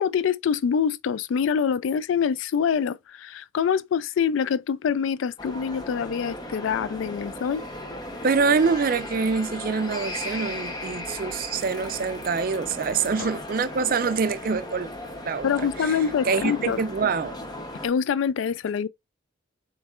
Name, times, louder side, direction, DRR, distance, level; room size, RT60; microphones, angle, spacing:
voice 1, 0.0-7.6 13.2-13.3 15.4-16.8 17.8-18.9, left 7 dB, 75° left, 0.3 m, -25 dB
sound 1, 5.4-17.9, left 1 dB, 20° left, 0.8 m, -36 dB
voice 2, 8.2-14.9 15.2-15.5 15.8-16.0 16.2-17.4, right 5 dB, 45° right, 0.4 m, -25 dB
7.0 x 3.1 x 2.4 m
head